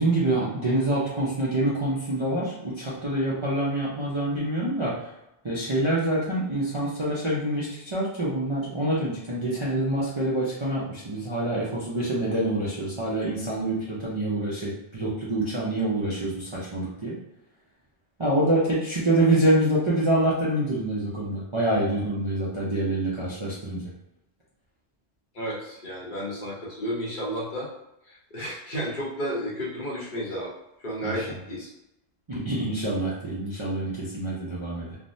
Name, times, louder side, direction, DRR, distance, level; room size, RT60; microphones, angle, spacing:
voice 1, 0.0-5.1 5.4-17.2 18.2-23.9 31.0-31.2 32.3-35.0, right 1 dB, 35° right, -8 dB, 0.5 m, -26 dB
voice 2, 25.3-27.7 28.1-30.5 30.8-31.7, equal, 50° left, -6 dB, 0.9 m, -32 dB
3.4 x 2.1 x 2.6 m, 0.88 s
omnidirectional pair, 1.2 m